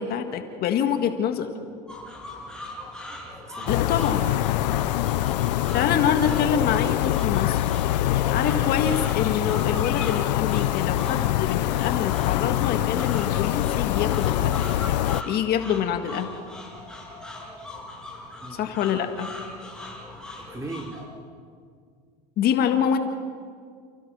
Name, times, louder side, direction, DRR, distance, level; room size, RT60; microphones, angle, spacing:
voice 1, 0.0-1.5 3.7-4.2 5.7-7.6 8.3-14.6 15.2-16.3 18.5-19.3 22.4-23.0, left 8 dB, 50° left, 7 dB, 1.8 m, -26 dB
sound 1, 1.9-21.0, left 2 dB, 5° left, 6.1 m, -40 dB
voice 2, 3.5-5.8 18.4-18.6 20.4-20.9, right 1 dB, 15° right, 3 dB, 3.2 m, -40 dB
sound 2, 3.7-15.2, left 14 dB, 85° left, 0.6 m, -24 dB
29.0 x 16.0 x 6.2 m, 2.1 s
supercardioid pair, 105°, 21 cm